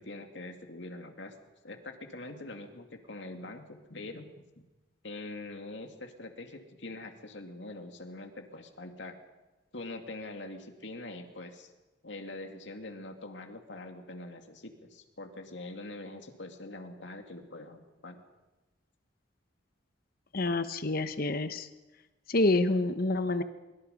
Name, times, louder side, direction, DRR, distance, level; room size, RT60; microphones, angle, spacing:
voice 1, 0.0-1.3 1.6-4.3 5.0-9.1 9.7-11.7 12.0-18.2, left 2 dB, 75° left, 5 dB, 2.5 m, -44 dB
voice 2, 20.3-21.7 22.3-23.4, left 2 dB, 55° left, 10 dB, 1.1 m, -27 dB
24.0 x 24.0 x 5.3 m, 1.1 s
head